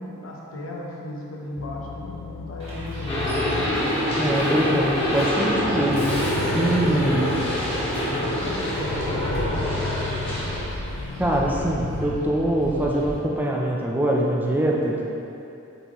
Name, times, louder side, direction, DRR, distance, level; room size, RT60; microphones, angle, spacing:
voice 1, 0.0-3.5 6.6-9.6, left 1 dB, 85° left, -2 dB, 0.9 m, -36 dB
sound 1, 1.6-12.2, left 5 dB, 70° left, 0.3 m, -35 dB
Bus, 2.6-13.1, equal, 35° right, 1.4 m, -37 dB
sound 2, 3.1-10.6, equal, 30° left, 1.4 m, -25 dB
voice 2, 4.2-6.0 6.5-7.3 11.2-15.0, right 1 dB, 10° right, -3 dB, 0.6 m, -23 dB
8.0 x 4.0 x 3.1 m, 2.7 s
head